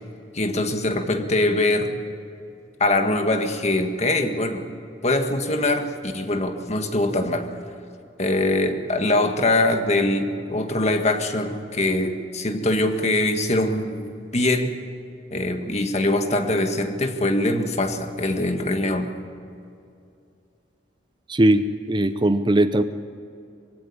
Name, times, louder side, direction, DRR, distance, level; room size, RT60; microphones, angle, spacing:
voice 1, 0.3-1.9 2.8-4.7 5.0-7.5 8.2-14.7 15.3-19.1, left 2 dB, 40° left, 6 dB, 1.7 m, -23 dB
voice 2, 21.3-22.8, right 1 dB, 25° right, 11 dB, 0.7 m, -19 dB
22.5 x 16.0 x 9.7 m, 2.6 s
head